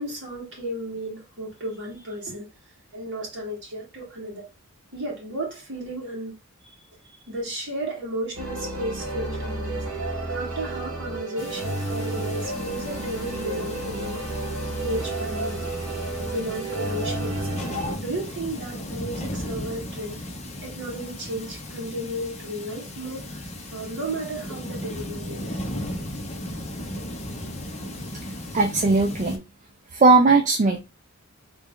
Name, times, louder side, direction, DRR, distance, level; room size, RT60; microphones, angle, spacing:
voice 1, 0.0-2.5 2.9-4.5 4.9-6.3 6.6-9.8 10.3-14.3 14.8-15.7 16.2-17.6 18.0-20.2 20.6-25.6, right 1 dB, 55° right, 1.8 m, -34 dB
sound 1, 8.3-17.9, right 2 dB, 75° right, 1.3 m, -31 dB
sound 2, 11.4-29.4, left 1 dB, 30° left, 0.7 m, -36 dB
voice 2, 28.5-29.4 29.9-30.8, right 3 dB, 35° right, 0.4 m, -18 dB
3.2 x 2.4 x 3.6 m
head